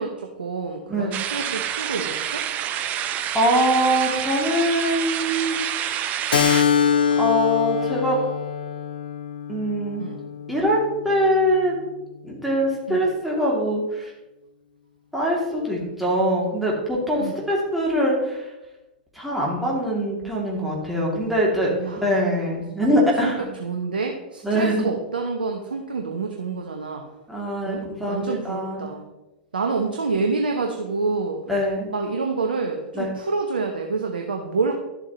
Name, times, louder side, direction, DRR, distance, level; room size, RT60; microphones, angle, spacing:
voice 1, 0.0-2.4 10.0-10.2 12.9-13.1 15.9-16.0 17.2-17.4 21.8-22.0 22.9-23.3 23.6-27.0 27.7-29.1 29.5-31.4 31.9-34.7, right 4 dB, 70° right, 3 dB, 0.9 m, -28 dB
sound 1, 1.1-6.6, right 10 dB, 30° right, 0.6 m, -28 dB
voice 2, 3.3-5.6 7.2-8.2 9.5-10.0 10.5-11.8 12.2-14.1 15.1-18.5 19.1-23.5 24.4-24.9 27.3-28.9 31.5-31.9 32.9-33.1, equal, ahead, -4 dB, 2.6 m, -23 dB
Keyboard (musical), 6.3-11.4, left 7 dB, 65° left, 0.6 m, -24 dB
11.5 x 7.4 x 3.1 m, 1.0 s
figure-of-eight pair, 100°, 5 cm